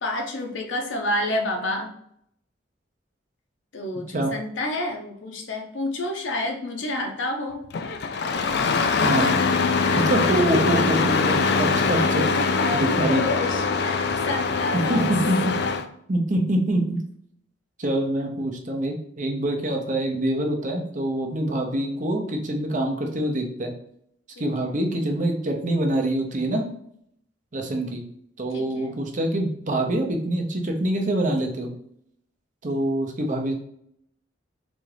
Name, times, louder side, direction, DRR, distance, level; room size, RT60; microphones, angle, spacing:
voice 1, 0.0-1.9 3.7-7.6 9.8-10.1 10.5-10.7 12.4-15.0 24.4-24.7 28.5-28.9, left 1 dB, 75° left, 3 dB, 0.8 m, -29 dB
Engine starting, 7.7-15.8, left 4 dB, 55° left, 0.4 m, -23 dB
voice 2, 9.0-9.3 9.9-12.3 12.7-13.2 14.7-15.3 16.1-17.0 17.8-23.7 24.4-26.6 27.5-28.0 28.4-31.7 32.6-33.5, right 1 dB, 40° right, 2 dB, 0.7 m, -25 dB
4.1 x 2.4 x 3.3 m, 0.70 s
head